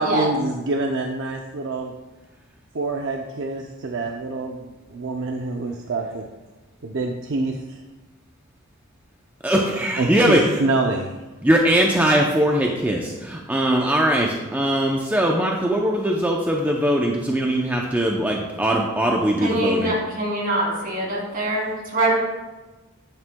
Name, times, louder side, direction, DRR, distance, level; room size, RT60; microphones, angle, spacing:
voice 1, 0.0-1.9 2.7-6.3 6.8-7.8 9.5-9.6 10.0-11.1, right 2 dB, 60° right, 2 dB, 0.6 m, -26 dB
voice 2, 9.4-10.4 11.4-19.9, right 1 dB, 10° right, -1 dB, 0.6 m, -21 dB
voice 3, 19.4-22.1, right 1 dB, 45° right, -3 dB, 2.8 m, -23 dB
11.0 x 8.8 x 2.3 m, 1.2 s
head